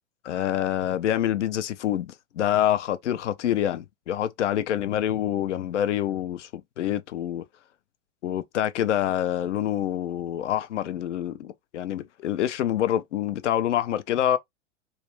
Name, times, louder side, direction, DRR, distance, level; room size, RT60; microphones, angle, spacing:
voice 1, 0.2-6.5 6.8-7.4 8.2-14.4, left 11 dB, 80° left, 0.5 m, -26 dB
2.4 x 2.2 x 3.0 m
hypercardioid pair, 105°, 35 cm